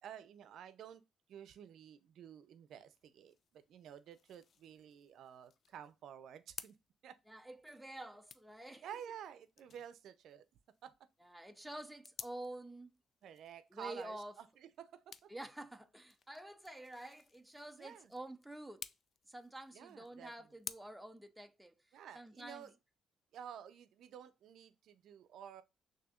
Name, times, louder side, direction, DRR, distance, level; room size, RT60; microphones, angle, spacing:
voice 1, 0.0-1.0 1.3-6.7 7.0-7.2 8.8-10.4 10.8-11.1 13.2-15.3 17.8-18.1 19.7-20.3 21.9-22.7 23.3-25.6, right 9 dB, 75° right, 0.5 m, -52 dB
sound 1, 2.7-20.7, left 6 dB, 55° left, 0.4 m, -56 dB
voice 2, 7.3-8.8 11.2-12.9 13.7-14.3 15.3-18.8 19.3-21.7 22.1-22.6, right 1 dB, 5° right, 0.5 m, -49 dB
6.1 x 2.8 x 2.4 m
cardioid pair, 90°, 0 cm